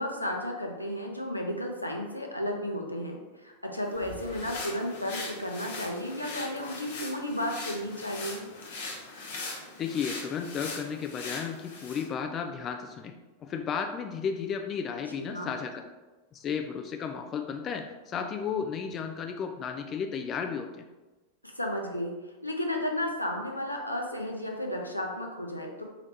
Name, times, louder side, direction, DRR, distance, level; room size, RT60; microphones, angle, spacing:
voice 1, 0.0-8.5 15.2-15.5 21.4-22.1 22.4-25.8, left 1 dB, 85° left, 1 dB, 0.6 m, -33 dB
sound 1, 3.9-12.1, left 3 dB, 55° left, 0.8 m, -40 dB
voice 2, 9.8-13.1 13.4-15.8 16.3-20.8, left 6 dB, 30° left, 6 dB, 0.3 m, -33 dB
4.9 x 3.1 x 2.7 m, 1.2 s
figure-of-eight pair, 90°, 0 cm